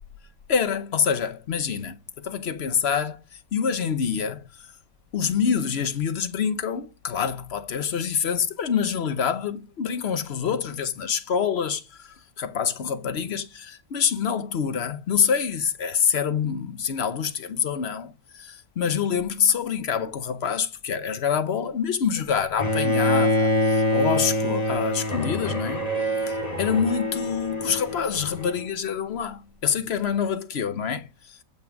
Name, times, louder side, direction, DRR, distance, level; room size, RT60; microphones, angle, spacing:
voice 1, 0.5-3.2 3.5-4.5 5.1-25.9 26.3-31.4, left 7 dB, 50° left, 0.8 m, -26 dB
Bowed string instrument, 22.6-28.7, left 1 dB, 25° left, 2.1 m, -25 dB
15.0 x 6.0 x 5.1 m
omnidirectional pair, 1.8 m